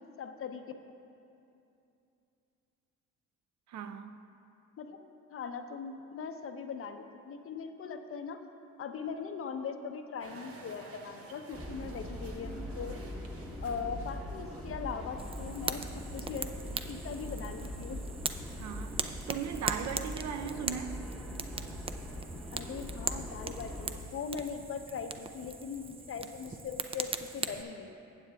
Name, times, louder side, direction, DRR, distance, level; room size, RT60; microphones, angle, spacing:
voice 1, 0.2-0.6 4.8-5.0 5.3-8.4 8.8-13.0 13.6-16.5 16.8-18.1 22.5-27.9, left 6 dB, 45° left, 0.6 m, -40 dB
voice 2, 3.7-4.2 18.6-21.0, right 8 dB, 65° right, 0.6 m, -38 dB
sound 1, 10.2-17.7, right 3 dB, 50° right, 1.0 m, -54 dB
sound 2, 11.5-24.0, equal, ahead, 1.0 m, -42 dB
Fire, 15.2-27.6, right 4 dB, 20° right, 0.4 m, -40 dB
15.0 x 8.3 x 2.3 m
cardioid pair, 90°, 30 cm